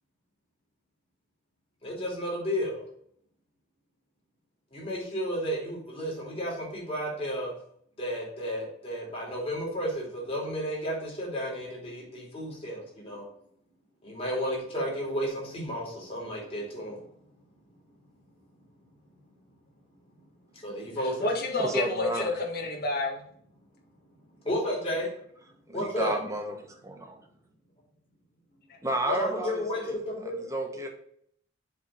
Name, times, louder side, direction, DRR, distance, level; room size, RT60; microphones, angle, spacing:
voice 1, 1.8-2.8 4.7-7.5 8.0-13.2 14.0-17.0 20.6-21.3 24.4-25.1 25.7-26.2 29.1-30.5 30.7-30.8, equal, 30° left, -4 dB, 2.9 m, -32 dB
voice 2, 21.0-23.2, left 2 dB, 50° left, 0 dB, 1.5 m, -29 dB
voice 3, 21.6-22.3 25.7-26.6 26.8-27.2 28.8-30.0 30.2-30.9, right 1 dB, 15° right, 2 dB, 1.1 m, -32 dB
7.5 x 3.7 x 5.3 m, 0.67 s
head